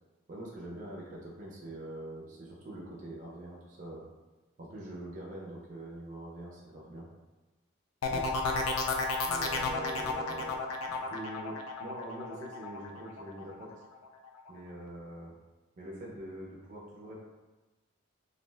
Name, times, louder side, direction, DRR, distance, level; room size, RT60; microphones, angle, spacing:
voice 1, 0.3-4.0 4.6-7.1 8.1-8.3 9.2-10.6 10.9-13.7 14.5-15.3 15.8-17.2, right 1 dB, 35° right, -3 dB, 0.4 m, -44 dB
sound 1, 8.0-13.6 14.0-14.5, left 3 dB, 85° left, 0.3 m, -33 dB
2.5 x 2.0 x 3.2 m, 1.2 s
head